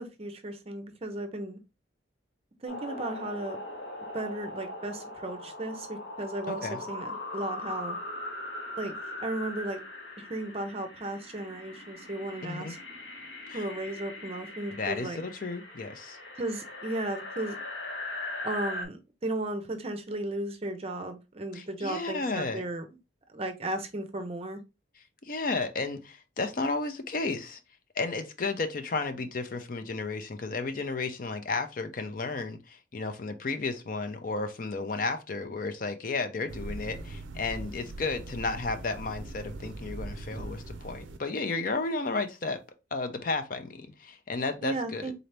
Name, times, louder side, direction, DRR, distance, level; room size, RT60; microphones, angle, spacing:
voice 1, 0.0-1.6 2.6-3.6 4.1-8.0 8.8-9.8 10.2-12.8 13.5-15.2 16.4-17.6 18.4-22.8 23.3-24.6 44.6-45.1, right 1 dB, 30° right, 0.6 m, -35 dB
sound 1, 2.7-18.9, left 2 dB, 65° left, 1.0 m, -40 dB
voice 2, 6.5-6.8 12.4-12.7 13.5-13.7 14.8-16.2 21.5-22.6 25.2-27.6 28.0-42.6 42.9-45.1, left 3 dB, 45° left, 0.5 m, -33 dB
sound 2, 36.5-41.2, right 2 dB, 85° right, 0.5 m, -41 dB
3.9 x 2.8 x 3.3 m
head